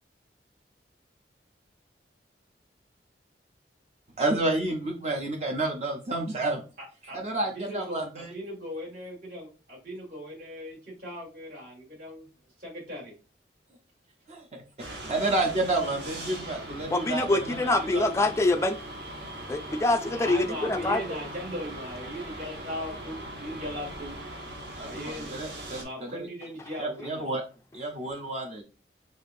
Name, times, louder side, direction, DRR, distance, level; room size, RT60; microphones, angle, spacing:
voice 1, 4.2-6.6 7.1-8.3 14.3-14.6 14.9-18.0 24.8-26.3 26.8-27.4 27.7-28.6, right 2 dB, 40° right, 0.6 m, -30 dB
voice 2, 7.5-12.3 12.6-13.1 20.1-24.2 24.7-25.4 25.8-27.3, equal, 55° right, 2.2 m, -38 dB
sound 1, 14.8-25.8, right 1 dB, 70° right, 1.2 m, -40 dB
voice 3, 16.9-18.8 19.5-21.2, left 2 dB, 15° left, 0.3 m, -25 dB
6.2 x 2.5 x 2.6 m
head